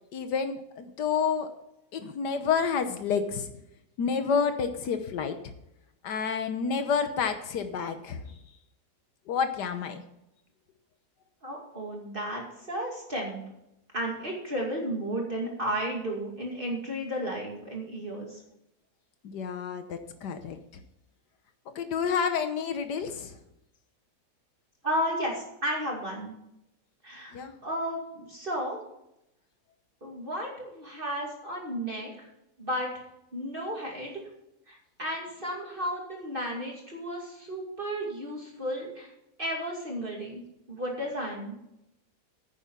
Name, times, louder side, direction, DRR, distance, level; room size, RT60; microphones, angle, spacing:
voice 1, 0.1-1.5 1.9-3.5 4.0-5.5 6.0-8.2 9.3-10.0 19.2-20.6 21.7-23.3 27.3-27.5, left 6 dB, 85° left, 8 dB, 1.6 m, -29 dB
voice 2, 11.4-13.4 13.9-18.4 24.8-26.3 27.0-28.8 30.0-32.3 32.6-32.9 33.3-34.1 34.7-39.1 39.4-40.4 40.7-41.6, equal, 30° right, -2 dB, 2.6 m, -33 dB
10.5 x 9.2 x 5.5 m, 0.85 s
omnidirectional pair, 1.7 m